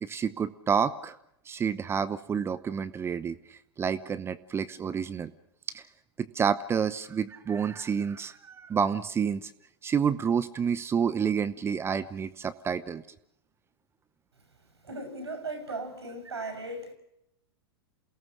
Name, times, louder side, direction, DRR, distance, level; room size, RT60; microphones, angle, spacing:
voice 1, 0.0-1.2 1.5-5.3 5.7-5.8 6.2-9.5 9.8-13.0 16.4-16.5, right 7 dB, 20° right, 0.8 m, -29 dB
voice 2, 14.8-16.9, right 2 dB, 80° right, 6.3 m, -37 dB
28.5 x 18.0 x 6.3 m
figure-of-eight pair, 105°, 14 cm